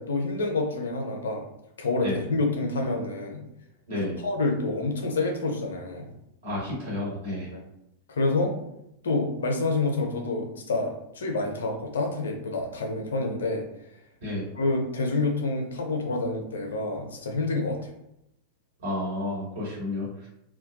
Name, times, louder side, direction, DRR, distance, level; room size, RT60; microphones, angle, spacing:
voice 1, 0.0-1.4 1.8-3.4 4.2-6.1 7.5-7.6 8.1-8.5 9.0-13.7 14.6-17.8, left 2 dB, 65° left, 2 dB, 0.5 m, -28 dB
voice 2, 6.4-7.5 14.2-14.4 18.8-20.3, left 1 dB, 60° right, -5 dB, 1.3 m, -31 dB
2.2 x 2.2 x 2.7 m, 0.81 s
figure-of-eight pair, 90°, 0 cm